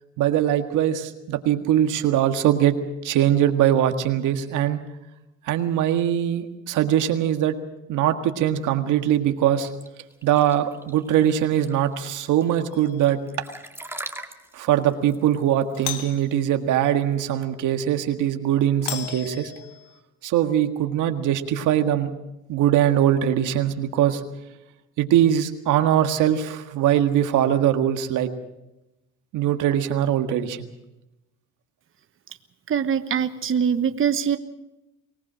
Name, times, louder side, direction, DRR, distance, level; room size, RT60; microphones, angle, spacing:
voice 1, 0.2-2.8 3.0-4.8 5.5-7.5 7.9-9.7 10.2-13.2 14.5-19.5 20.2-22.1 22.5-24.2 25.0-28.3 29.3-30.6, right 11 dB, 90° right, 7 dB, 1.8 m, -21 dB
sound 1, 9.6-17.3, right 2 dB, 10° right, 2.0 m, -41 dB
Doorbell, 12.7-13.2 15.7-16.3 18.8-20.0, left 10 dB, 90° left, 1.9 m, -35 dB
voice 2, 32.7-34.4, right 7 dB, 45° right, 10 dB, 1.1 m, -23 dB
24.0 x 19.0 x 6.2 m, 0.95 s
cardioid pair, 90°, 30 cm